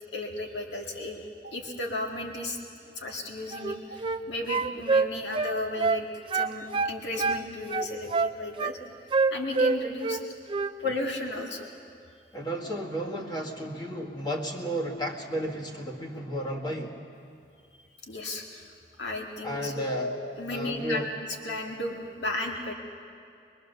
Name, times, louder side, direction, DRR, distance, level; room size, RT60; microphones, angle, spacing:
voice 1, 0.1-2.6 3.0-6.1 6.3-8.8 9.3-10.2 10.8-11.7 18.1-21.1 21.4-22.7, left 2 dB, 90° left, 1 dB, 2.1 m, -34 dB
sound 1, 3.5-4.2 4.5-6.0 6.3-7.4 7.7-8.7 9.1-10.2 10.5-10.7, right 4 dB, 30° right, 0.4 m, -26 dB
voice 2, 12.3-17.0 19.4-20.1 20.5-21.1, equal, 25° left, -1 dB, 2.0 m, -33 dB
23.0 x 22.5 x 6.9 m, 2.5 s
head